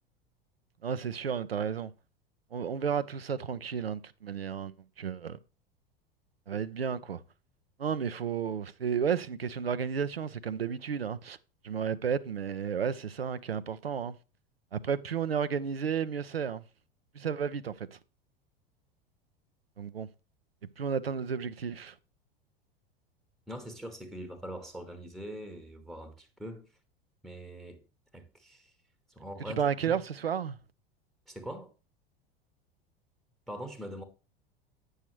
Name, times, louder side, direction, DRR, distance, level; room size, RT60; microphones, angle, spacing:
voice 1, 0.8-1.9 2.5-5.4 6.5-7.2 7.8-11.4 11.6-14.1 14.7-16.6 17.1-18.0 19.8-20.1 20.8-22.0 29.6-30.6, right 7 dB, 85° right, 0.5 m, -32 dB
voice 2, 23.5-26.7 27.2-27.8 28.1-28.7 29.1-29.6 29.8-30.0 31.3-31.7 33.5-34.0, equal, ahead, 0.8 m, -42 dB
8.9 x 6.3 x 3.1 m
figure-of-eight pair, 85°, 29 cm